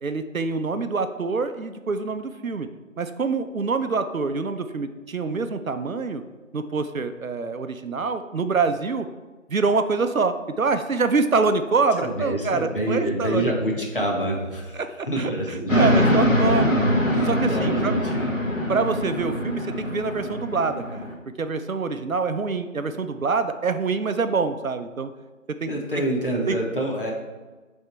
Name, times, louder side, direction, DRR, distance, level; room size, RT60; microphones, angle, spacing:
voice 1, 0.0-2.7 3.0-6.2 6.5-9.1 9.5-13.5 14.7-14.9 15.2-16.8 17.2-17.9 18.7-21.1 21.4-25.1 25.6-25.7 26.5-26.6, right 4 dB, 80° right, 9 dB, 0.7 m, -25 dB
voice 2, 12.0-16.5 17.1-18.3 25.7-27.1, right 1 dB, 40° left, -2 dB, 1.4 m, -27 dB
sound 1, 15.7-21.1, equal, 70° left, 1.6 m, -23 dB
8.8 x 3.6 x 4.5 m, 1.2 s
figure-of-eight pair, 175°, 41 cm